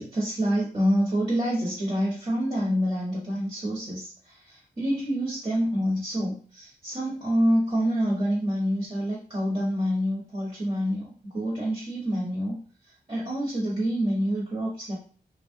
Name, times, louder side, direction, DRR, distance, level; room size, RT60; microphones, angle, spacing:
voice 1, 0.0-4.1 4.5-11.1 11.3-12.6 13.1-14.9, equal, 35° right, -7 dB, 1.3 m, -27 dB
2.9 x 2.4 x 2.7 m, 0.42 s
wide cardioid pair, 70°, 16 cm